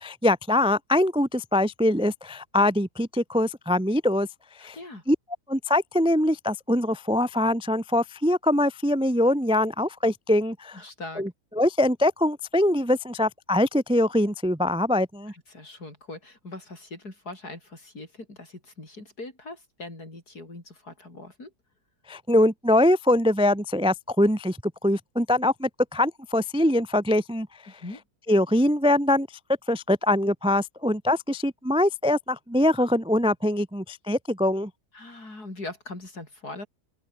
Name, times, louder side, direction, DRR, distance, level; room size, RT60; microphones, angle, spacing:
voice 1, 0.0-4.3 4.6-4.7 5.1-5.2 5.5-10.7 11.2-11.3 11.6-15.3 22.1-27.5 28.3-29.3 29.7-34.7, left 1 dB, 10° right, 0.3 m, -23 dB
voice 2, 4.6-5.0 10.7-11.3 15.3-21.5 27.7-28.0 34.9-36.7, left 2 dB, 75° left, 7.0 m, -41 dB
open air
omnidirectional pair, 1.7 m